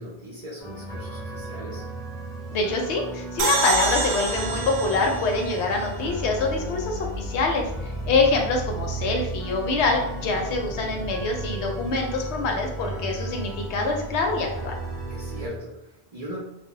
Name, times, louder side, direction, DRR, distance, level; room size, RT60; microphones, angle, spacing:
voice 1, 0.0-1.9 15.1-16.4, equal, 50° right, -5 dB, 0.5 m, -39 dB
sound 1, 0.6-15.5, right 1 dB, 5° left, 0.9 m, -35 dB
voice 2, 2.5-14.8, left 3 dB, 80° left, 2 dB, 0.8 m, -25 dB
sound 2, 3.4-6.7, right 3 dB, 80° right, 0.8 m, -28 dB
sound 3, 3.7-11.6, right 1 dB, 30° left, 0.7 m, -39 dB
2.1 x 2.0 x 3.7 m, 0.89 s
omnidirectional pair, 1.1 m